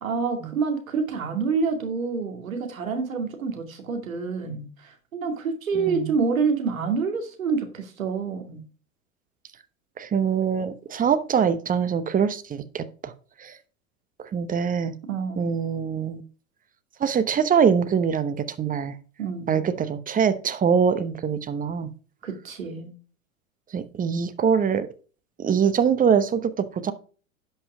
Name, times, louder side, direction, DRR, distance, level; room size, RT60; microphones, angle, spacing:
voice 1, 0.0-8.6 15.1-15.5 19.2-19.6 22.2-22.9, right 5 dB, 80° right, 5 dB, 2.4 m, -27 dB
voice 2, 5.7-6.1 10.0-13.1 13.4-13.6 14.2-14.9 15.4-16.2 17.0-19.0 19.5-21.9 23.7-24.9 25.4-26.9, right 7 dB, 20° right, 12 dB, 0.9 m, -23 dB
11.0 x 5.7 x 4.9 m, 0.39 s
figure-of-eight pair, 90°, 41 cm